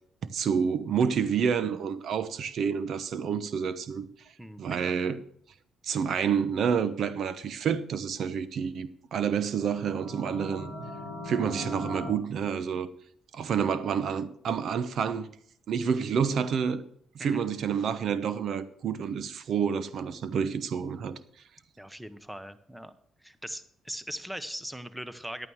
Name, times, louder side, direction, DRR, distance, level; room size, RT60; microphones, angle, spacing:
voice 1, 0.3-4.1 4.6-5.2 5.8-10.7 11.2-12.9 13.3-15.3 15.7-16.8 17.1-21.2, right 7 dB, 65° right, 1.0 m, -29 dB
voice 2, 4.4-4.9 17.2-17.4 21.8-22.9 23.2-25.5, equal, 5° right, 1.1 m, -40 dB
sound 1, 9.5-12.1, left 1 dB, 35° right, 6.6 m, -39 dB
11.5 x 9.0 x 6.4 m
cardioid pair, 90°, 0 cm